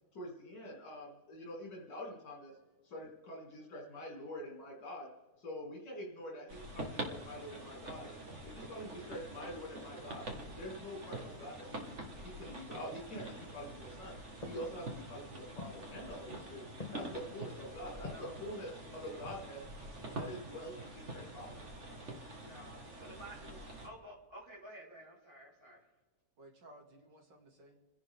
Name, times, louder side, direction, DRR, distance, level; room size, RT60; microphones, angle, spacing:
voice 1, 0.1-2.6 2.8-5.1 5.4-10.3 10.6-14.2 14.5-16.6 16.9-19.6 20.2-20.8 21.1-21.7, equal, 75° left, -3 dB, 3.2 m, -46 dB
sound 1, 6.5-23.9, right 1 dB, 40° right, 1.9 m, -46 dB
sound 2, 12.6-14.0 14.4-15.0 15.6-16.0 16.8-17.2 18.0-18.5 19.0-19.6 19.9-20.0, left 4 dB, 20° left, 1.5 m, -48 dB
voice 2, 18.0-18.4 18.8-19.3 22.4-22.7 23.0-23.6 23.8-25.8, right 1 dB, 15° right, -5 dB, 4.3 m, -52 dB
voice 3, 19.8-21.0 22.7-23.5 26.4-27.8, right 1 dB, 80° right, 1 dB, 3.0 m, -58 dB
30.0 x 11.0 x 3.6 m, 1.4 s
omnidirectional pair, 1.9 m